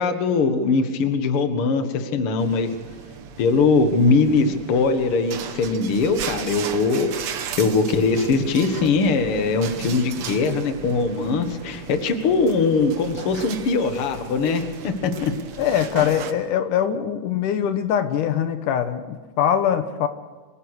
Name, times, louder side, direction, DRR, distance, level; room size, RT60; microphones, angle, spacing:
voice 1, 0.0-2.7 3.4-7.1 7.6-15.3, left 4 dB, 50° left, 7 dB, 2.2 m, -21 dB
sound 1, 2.4-16.3, right 7 dB, 60° right, 1.6 m, -36 dB
voice 2, 15.6-20.1, left 9 dB, 80° left, 9 dB, 2.5 m, -22 dB
25.5 x 16.0 x 6.4 m, 1.4 s
omnidirectional pair, 3.7 m